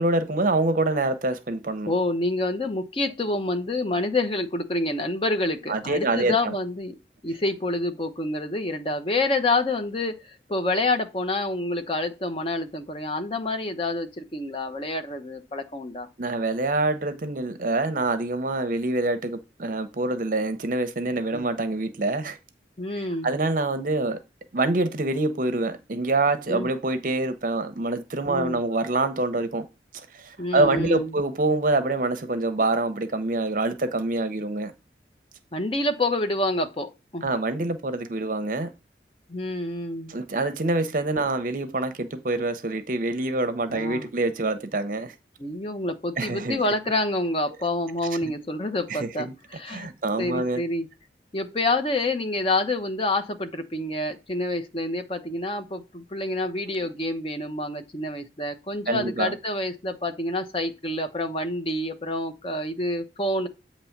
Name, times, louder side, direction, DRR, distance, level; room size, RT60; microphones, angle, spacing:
voice 1, 0.0-1.9 5.7-6.5 16.2-22.4 23.2-24.2 24.5-29.7 30.1-34.7 37.2-38.7 40.1-45.1 46.2-46.6 48.2-48.3 48.9-49.3 49.7-50.6 56.2-56.3 58.9-59.4, right 2 dB, 45° right, 0.6 m, -26 dB
voice 2, 1.9-7.0 7.2-16.1 21.3-21.5 22.8-23.3 26.5-26.7 28.3-28.6 30.4-31.2 35.5-37.3 39.3-40.1 43.7-44.1 45.4-49.9 50.2-50.9 51.3-63.5, left 2 dB, 30° left, 0.8 m, -28 dB
8.3 x 3.0 x 5.7 m
head